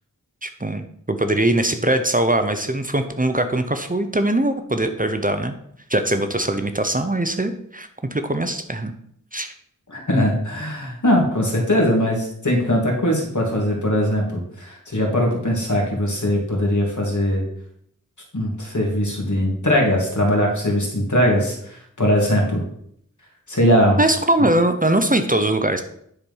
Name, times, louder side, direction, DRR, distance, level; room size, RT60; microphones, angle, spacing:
voice 1, 0.4-5.6 5.9-8.9 9.3-9.5 24.0-25.8, right 1 dB, 25° right, 8 dB, 0.8 m, -21 dB
voice 2, 9.9-17.4 18.3-22.6 23.5-24.0, equal, 70° left, -1 dB, 2.5 m, -20 dB
10.0 x 4.5 x 5.5 m, 0.68 s
wide cardioid pair, 50°, 31 cm